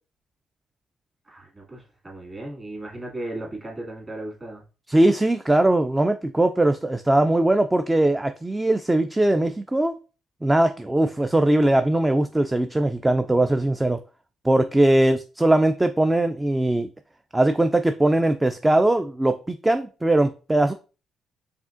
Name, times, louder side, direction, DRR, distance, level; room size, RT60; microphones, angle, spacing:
voice 1, 1.3-4.6, right 1 dB, 30° right, 2.1 m, -36 dB
voice 2, 4.9-9.9 10.4-14.0 14.4-16.9 17.3-20.7, right 1 dB, 10° right, 0.3 m, -20 dB
4.9 x 3.5 x 2.5 m
cardioid pair, 90°, 0 cm